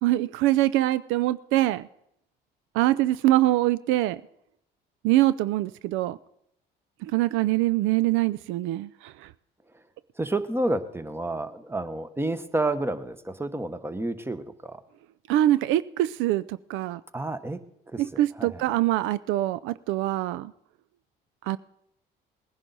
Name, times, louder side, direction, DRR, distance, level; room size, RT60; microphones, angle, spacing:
voice 1, 0.0-1.9 2.7-4.2 5.0-6.2 7.0-9.3 15.3-17.0 18.0-20.5 21.5-21.6, right 15 dB, 75° right, 16 dB, 0.4 m, -24 dB
voice 2, 10.2-14.8 17.1-17.6 17.9-18.0 18.4-18.6, right 2 dB, 10° right, 11 dB, 1.1 m, -29 dB
19.0 x 10.5 x 4.0 m, 0.77 s
supercardioid pair, 70°, 20 cm